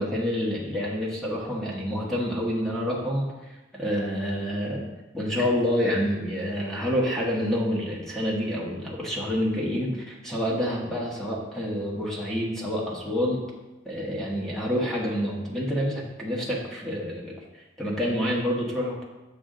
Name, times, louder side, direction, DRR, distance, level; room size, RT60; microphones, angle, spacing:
voice 1, 0.0-3.3 3.7-4.9 5.1-13.4 13.8-17.3 17.8-19.0, equal, 5° left, -4 dB, 1.2 m, -28 dB
7.0 x 6.0 x 3.8 m, 1.1 s
head